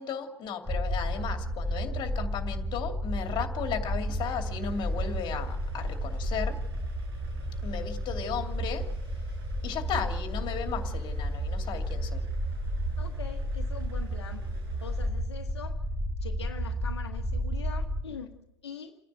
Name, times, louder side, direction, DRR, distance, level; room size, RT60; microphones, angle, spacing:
voice 1, 0.0-6.6 7.6-8.9 9.6-12.2, left 7 dB, 35° left, 6 dB, 2.6 m, -35 dB
sound 1, 0.7-18.0, equal, 5° left, 2.4 m, -32 dB
sound 2, 4.1-15.1, right 2 dB, 65° right, 6.7 m, -56 dB
voice 2, 13.0-14.5 14.8-15.8 16.2-19.0, left 6 dB, 70° left, 4 dB, 1.3 m, -43 dB
29.5 x 10.0 x 9.1 m, 0.94 s
figure-of-eight pair, 85°, 14 cm